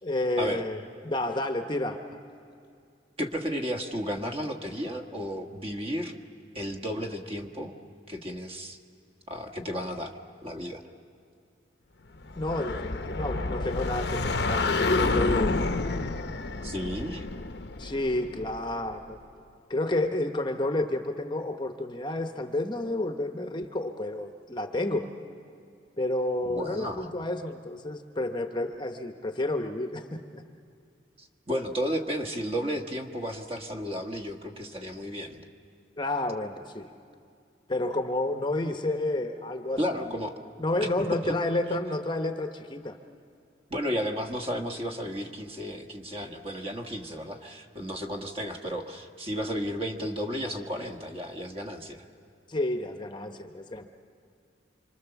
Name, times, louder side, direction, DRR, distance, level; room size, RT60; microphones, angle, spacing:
voice 1, 0.0-2.0 12.3-15.7 17.8-19.2 19.7-25.1 26.0-30.4 36.0-36.9 37.7-40.3 40.6-43.0 52.5-53.8, left 1 dB, 25° left, 6 dB, 0.9 m, -30 dB
voice 2, 3.2-6.1 6.5-7.7 8.1-8.8 9.3-10.1 10.4-10.8 16.6-17.3 26.4-27.1 31.2-35.4 39.8-40.4 43.7-52.0, equal, 30° right, 4 dB, 1.5 m, -33 dB
sound 1, 12.3-18.9, left 3 dB, 60° left, 0.8 m, -29 dB
27.0 x 25.5 x 7.0 m, 2.4 s
head